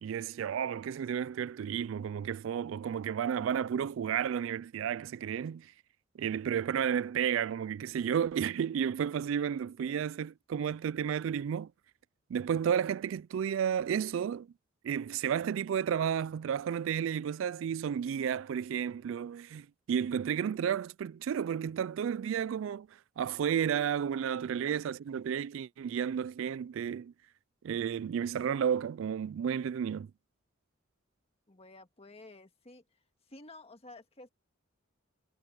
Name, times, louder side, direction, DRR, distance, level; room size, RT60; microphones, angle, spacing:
voice 1, 0.0-5.7 6.2-11.7 12.3-14.5 14.8-27.1 27.6-30.1, right 8 dB, 65° right, 0.3 m, -32 dB
voice 2, 31.5-32.8 33.3-34.3, left 2 dB, 30° left, 1.8 m, -52 dB
head